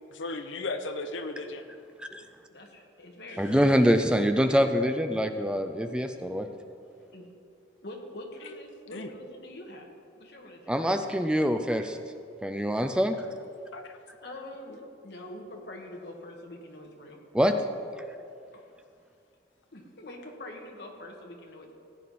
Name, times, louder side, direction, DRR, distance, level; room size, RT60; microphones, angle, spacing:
voice 1, 0.1-1.7 8.4-8.6 8.9-9.1 13.7-14.0, left 2 dB, 85° left, 7 dB, 0.9 m, -35 dB
voice 2, 2.5-3.6 7.0-7.2 7.8-9.9 10.2-10.7 14.2-17.2 18.5-18.6 19.7-21.7, left 1 dB, 60° left, 1 dB, 1.6 m, -44 dB
voice 3, 3.4-6.5 10.7-12.0 12.4-13.2 17.3-17.5, equal, 5° right, 7 dB, 0.4 m, -24 dB
15.5 x 9.2 x 4.2 m, 2.4 s
head